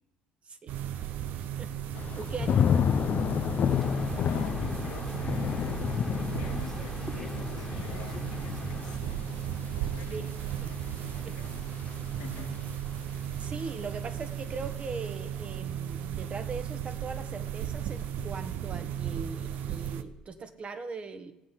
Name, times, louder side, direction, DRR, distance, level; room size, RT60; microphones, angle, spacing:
voice 1, 0.4-1.0 1.6-1.7 2.1-2.6 10.1-10.2 10.6-10.7 11.2-11.4 13.4-21.3, right 4 dB, 35° right, 8 dB, 1.4 m, -40 dB
sound 1, 0.7-20.0, right 10 dB, 60° right, 0.8 m, -36 dB
Thunder / Rain, 1.9-12.9 13.3-13.8, left 8 dB, 45° left, 0.6 m, -31 dB
sound 2, 3.7-9.0, left 1 dB, 5° left, 1.7 m, -41 dB
voice 2, 4.2-11.7 12.2-12.7, left 7 dB, 85° left, -1 dB, 2.1 m, -47 dB
18.0 x 8.2 x 5.9 m, 0.93 s
hypercardioid pair, 60°, 3 cm